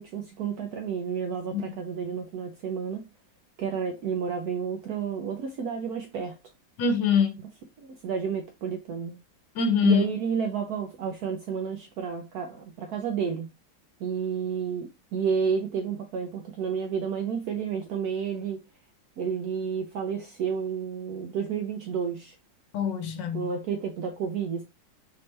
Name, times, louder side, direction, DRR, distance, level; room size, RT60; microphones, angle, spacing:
voice 1, 0.0-3.0 3.6-6.4 7.8-9.2 9.8-13.5 14.0-18.6 19.2-22.3 23.3-24.6, right 6 dB, 70° right, 1.0 m, -31 dB
voice 2, 6.8-7.4 9.5-10.1 22.7-23.5, left 6 dB, 75° left, 1.3 m, -24 dB
4.2 x 3.2 x 3.2 m
omnidirectional pair, 2.0 m